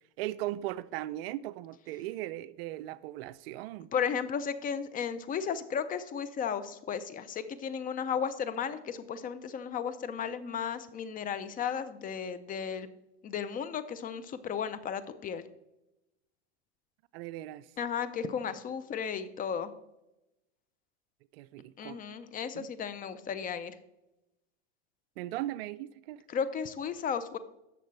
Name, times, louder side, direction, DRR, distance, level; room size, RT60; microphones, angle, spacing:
voice 1, 0.2-3.9 17.1-17.7 21.3-22.0 22.5-22.7 25.2-26.2, right 15 dB, 60° right, 0.5 m, -38 dB
voice 2, 3.9-12.9 13.2-15.4 17.8-19.7 21.8-23.7 26.3-27.4, left 7 dB, 25° left, 0.6 m, -34 dB
11.0 x 6.6 x 3.2 m
hypercardioid pair, 110°, 34 cm